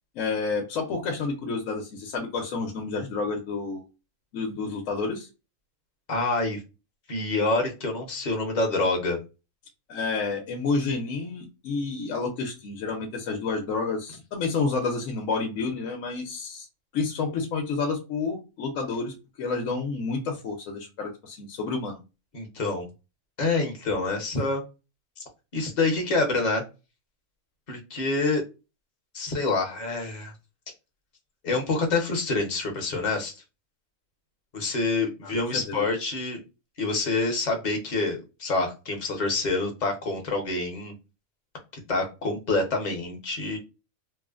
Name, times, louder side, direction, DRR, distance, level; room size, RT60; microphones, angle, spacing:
voice 1, 0.1-3.8 4.3-5.3 9.9-16.7 16.9-22.0 35.2-35.9, left 4 dB, 70° left, 3 dB, 1.0 m, -30 dB
voice 2, 6.1-6.6 7.1-9.2 22.3-22.9 23.4-24.6 25.5-26.6 27.7-28.4 29.1-30.3 31.4-33.3 34.5-36.4 36.8-40.9 41.9-43.6, left 3 dB, 40° left, 2 dB, 0.7 m, -27 dB
3.1 x 2.0 x 2.3 m, 0.28 s
omnidirectional pair, 1.5 m